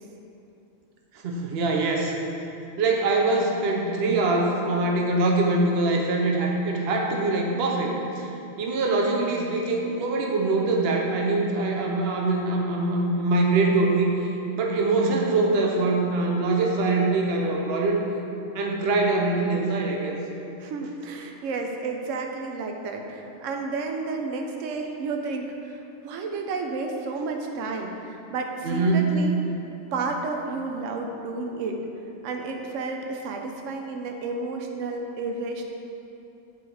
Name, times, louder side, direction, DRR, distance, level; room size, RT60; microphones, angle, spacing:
voice 1, 1.2-2.1 2.8-8.3 8.6-14.1 14.6-18.0 18.5-20.2 28.6-29.1, right 2 dB, 55° right, 0 dB, 1.0 m, -23 dB
voice 2, 20.6-29.5 29.9-31.8 32.2-35.6, right 3 dB, 75° right, 3 dB, 1.0 m, -31 dB
8.5 x 3.9 x 4.7 m, 2.8 s
omnidirectional pair, 1.4 m